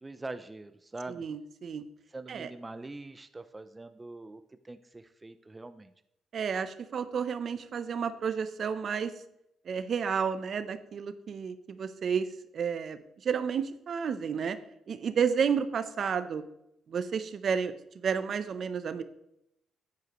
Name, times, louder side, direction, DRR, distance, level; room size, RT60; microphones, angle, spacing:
voice 1, 0.0-1.2 2.1-5.9, right 2 dB, 20° right, 10 dB, 0.5 m, -43 dB
voice 2, 1.1-1.8 2.3-2.5 6.3-9.1 9.6-12.3 12.5-14.6 14.9-16.4 16.9-17.7 18.0-19.0, right 6 dB, 55° right, 12 dB, 0.7 m, -31 dB
9.6 x 9.5 x 3.1 m, 0.78 s
cardioid pair, 90°, 0 cm